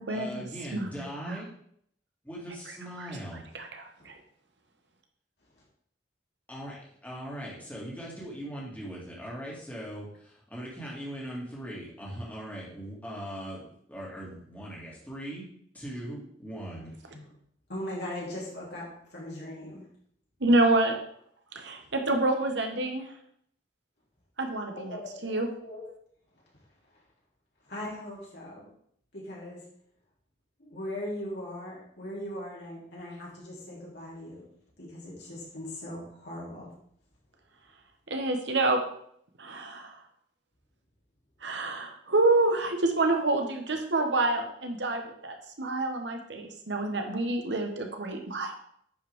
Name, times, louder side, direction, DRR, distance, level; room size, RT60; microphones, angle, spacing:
voice 1, 0.1-1.5 2.2-3.4 6.5-15.5 15.7-16.9, equal, 10° left, -5 dB, 2.2 m, -40 dB
voice 2, 3.5-4.1 20.4-21.0 21.5-23.0 24.4-25.5 38.1-38.8 39.4-39.9 41.4-48.5, right 2 dB, 75° right, 4 dB, 1.2 m, -27 dB
voice 3, 17.7-19.8 24.7-25.8 26.9-27.0 27.6-28.8 29.1-29.6 30.6-34.4 34.8-36.7, left 1 dB, 65° left, -5 dB, 3.1 m, -39 dB
10.0 x 5.2 x 3.6 m, 0.67 s
head